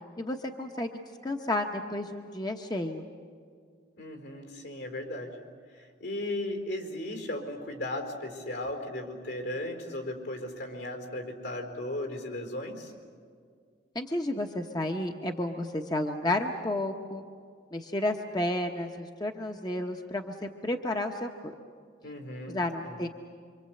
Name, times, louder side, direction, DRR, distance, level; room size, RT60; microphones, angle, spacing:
voice 1, 0.2-0.9 1.2-3.1 13.9-17.2 17.7-21.5 22.5-23.1, left 1 dB, 20° left, 3 dB, 0.9 m, -31 dB
voice 2, 4.0-5.4 6.0-12.9 22.0-22.9, left 1 dB, 75° left, 4 dB, 4.4 m, -36 dB
26.5 x 25.0 x 7.8 m, 2.1 s
head